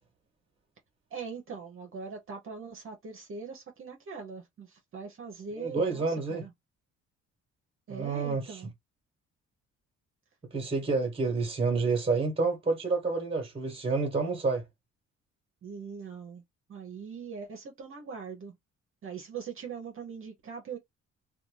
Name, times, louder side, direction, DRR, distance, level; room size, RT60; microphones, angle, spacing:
voice 1, 1.1-6.5 7.9-8.7 15.6-16.4 16.7-18.5 19.0-20.8, right 5 dB, 45° right, 0.7 m, -41 dB
voice 2, 5.6-6.4 7.9-8.6 10.5-14.6, right 4 dB, 20° right, 1.2 m, -29 dB
2.5 x 2.3 x 3.1 m
cardioid pair, 90°, 30 cm